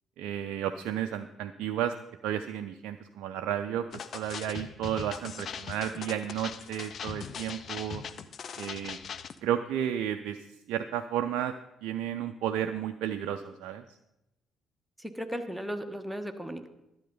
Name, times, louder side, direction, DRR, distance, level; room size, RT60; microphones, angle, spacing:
voice 1, 0.2-1.9 2.2-8.0 8.6-9.0 9.4-11.5 11.8-13.8, right 10 dB, 65° right, 7 dB, 0.4 m, -32 dB
sound 1, 3.9-9.4, left 7 dB, 50° left, 0.6 m, -40 dB
voice 2, 15.0-16.7, equal, 5° right, 5 dB, 1.2 m, -36 dB
12.0 x 7.7 x 5.4 m, 0.92 s
figure-of-eight pair, 45°, 0 cm